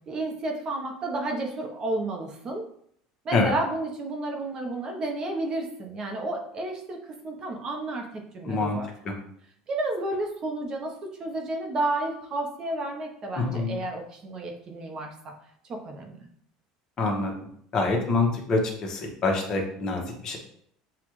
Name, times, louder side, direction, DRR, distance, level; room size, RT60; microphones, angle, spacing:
voice 1, 0.1-2.6 3.2-8.9 9.7-15.3 15.7-16.3, right 2 dB, 35° right, 2 dB, 0.8 m, -31 dB
voice 2, 8.5-8.8 9.0-9.1 13.5-13.7 17.0-17.3 17.7-20.4, left 3 dB, 35° left, 0 dB, 1.1 m, -25 dB
7.1 x 2.4 x 3.1 m, 0.66 s
supercardioid pair, 125°, 2 cm